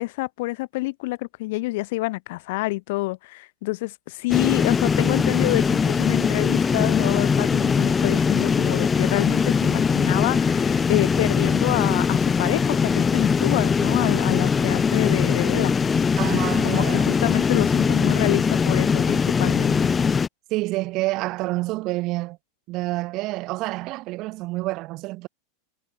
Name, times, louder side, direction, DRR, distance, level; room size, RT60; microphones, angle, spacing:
voice 1, 0.0-15.7 16.3-19.8, left 22 dB, 65° left, 3.2 m, -27 dB
sound 1, 4.3-20.3, left 5 dB, 20° left, 5.0 m, -21 dB
voice 2, 16.2-17.1 20.5-22.4 22.7-25.3, right 20 dB, 45° right, 7.1 m, -28 dB
supercardioid pair, 130°, 0 cm